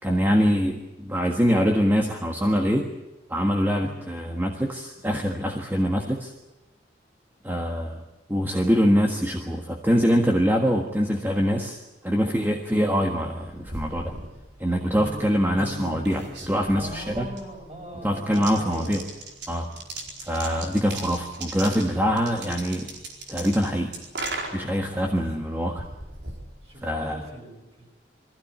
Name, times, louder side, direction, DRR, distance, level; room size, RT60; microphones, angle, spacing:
voice 1, 0.0-2.9 3.3-6.3 7.4-8.0 8.3-14.1 14.6-17.3 18.0-19.0 19.5-19.7 20.3-22.9 23.3-23.9 24.5-25.9 26.8-27.2, equal, 10° right, 1 dB, 1.5 m, -24 dB
sound 1, 13.2-27.3, right 2 dB, 70° right, 4.6 m, -39 dB
voice 2, 15.0-15.4 16.7-18.9 26.6-27.9, equal, 35° right, 0 dB, 7.2 m, -39 dB
22.5 x 16.0 x 9.9 m, 1.0 s
head